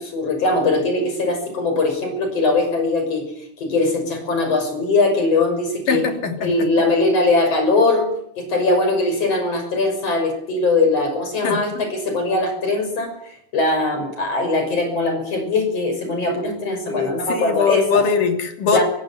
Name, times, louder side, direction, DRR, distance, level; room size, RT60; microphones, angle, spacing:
voice 1, 0.0-3.2 3.6-6.0 6.4-8.1 8.4-13.1 13.5-18.0 18.7-18.8, left 2 dB, 50° left, 5 dB, 7.1 m, -20 dB
voice 2, 5.9-6.7 11.4-11.8 16.4-16.6 16.9-18.8, left 5 dB, 85° left, 6 dB, 4.5 m, -21 dB
25.5 x 16.0 x 8.8 m, 0.72 s
omnidirectional pair, 3.7 m